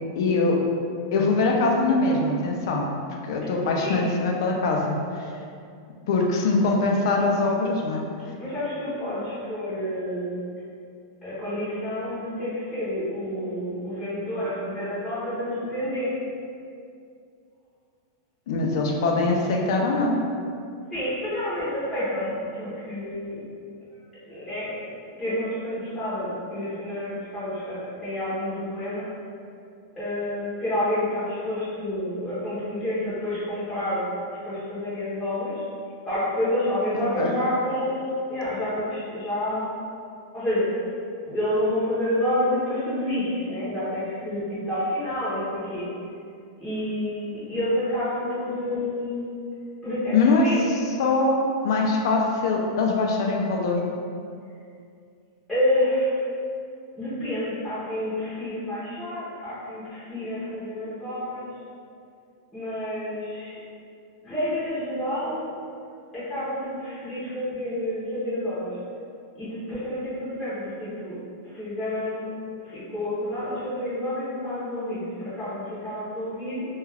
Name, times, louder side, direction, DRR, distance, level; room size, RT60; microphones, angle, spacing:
voice 1, 0.2-0.6 1.1-2.9 3.2-5.3 6.1-8.0 18.5-20.2 37.2-37.4 50.1-50.5 51.0-53.8, left 3 dB, 60° left, 0 dB, 0.4 m, -23 dB
voice 2, 3.4-4.0 8.2-10.4 11.2-16.1 20.9-23.4 24.2-24.7 25.2-29.1 30.0-34.1 34.4-35.6 36.0-39.7 40.3-40.7 41.3-45.9 46.6-49.3 49.8-50.6 55.5-56.2 57.0-61.5 62.5-63.6 64.2-65.5 66.1-68.8 69.3-71.2 71.4-72.3 72.6-76.7, left 1 dB, 5° left, -14 dB, 0.7 m, -29 dB
2.3 x 2.3 x 3.3 m, 2.4 s
supercardioid pair, 160°, 2 cm